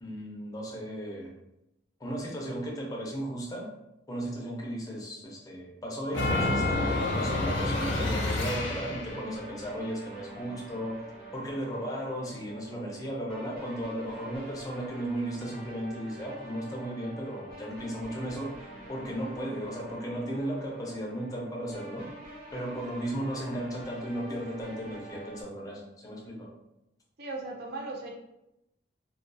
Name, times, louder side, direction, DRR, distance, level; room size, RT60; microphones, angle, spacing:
voice 1, 0.0-1.4 2.0-3.7 4.1-11.1 11.3-18.6 18.9-22.1 22.5-26.5, right 1 dB, 20° left, -2 dB, 0.5 m, -35 dB
Chime of Doom, 6.1-9.3, left 2 dB, 75° left, 0.6 m, -28 dB
sound 1, 9.1-25.4, right 1 dB, 40° right, 1.1 m, -47 dB
voice 2, 19.1-19.4 27.2-28.1, right 2 dB, 55° right, 1 dB, 0.4 m, -38 dB
2.2 x 2.2 x 2.5 m, 0.87 s
head